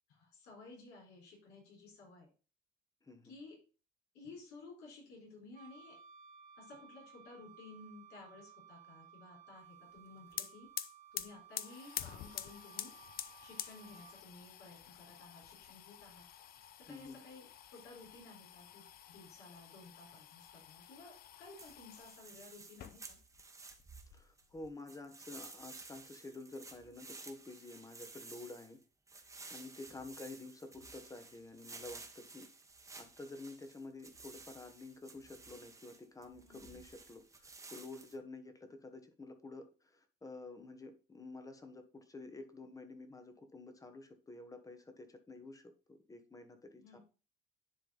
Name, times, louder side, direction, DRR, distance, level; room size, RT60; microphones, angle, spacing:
voice 1, 0.1-2.3 3.2-3.6 4.1-6.0 6.6-10.7 11.1-12.9 13.4-16.3 16.9-17.5 17.7-21.1 21.4-23.2 36.4-36.8 46.8-47.0, left 3 dB, 85° left, -2 dB, 4.2 m, -55 dB
voice 2, 3.0-3.3 16.9-17.2 24.1-28.8 29.5-32.5 33.0-47.0, left 2 dB, 20° left, 8 dB, 1.2 m, -50 dB
Wind instrument woodwind instrument, 5.5-14.2, right 8 dB, 50° right, 1.2 m, -58 dB
sound 1, 10.0-10.1 10.3-22.2 22.7-23.4 23.7-24.7, left 11 dB, 60° left, 0.6 m, -48 dB
sound 2, 21.6-24.4 24.9-38.2, right 3 dB, 20° right, 1.3 m, -54 dB
10.0 x 3.5 x 3.9 m, 0.36 s
cardioid pair, 110°, 17 cm